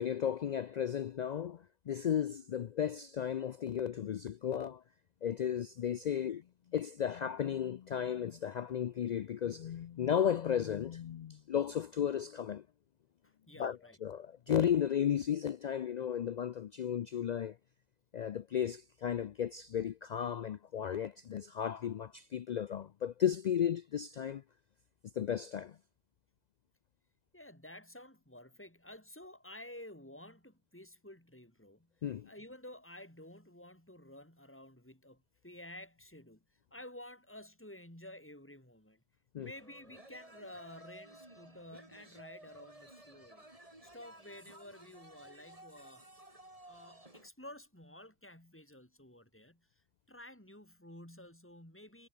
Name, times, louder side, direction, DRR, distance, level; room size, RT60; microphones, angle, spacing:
voice 1, 0.0-4.8 5.2-6.4 6.7-12.6 13.6-17.6 18.1-24.4 25.2-25.8 32.0-32.3 39.3-39.5, left 9 dB, 80° left, 0.3 m, -34 dB
voice 2, 13.2-14.0 27.3-31.9 32.2-39.0 39.4-43.5 43.8-46.1 46.6-49.7 50.1-52.1, left 1 dB, 10° left, 5.6 m, -52 dB
sound 1, 39.4-47.3, right 1 dB, 30° right, 4.4 m, -56 dB
omnidirectional pair, 1.3 m